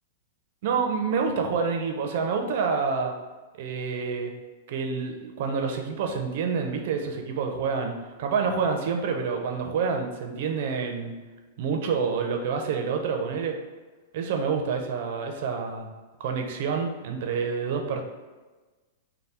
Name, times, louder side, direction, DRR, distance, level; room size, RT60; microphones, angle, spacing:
voice 1, 0.6-3.1 3.5-4.3 4.7-7.9 8.2-11.1 11.6-13.6 14.1-15.9 16.2-18.0, right 5 dB, 60° right, 3 dB, 0.6 m, -28 dB
3.4 x 2.2 x 4.2 m, 1.3 s
supercardioid pair, 145°, 0 cm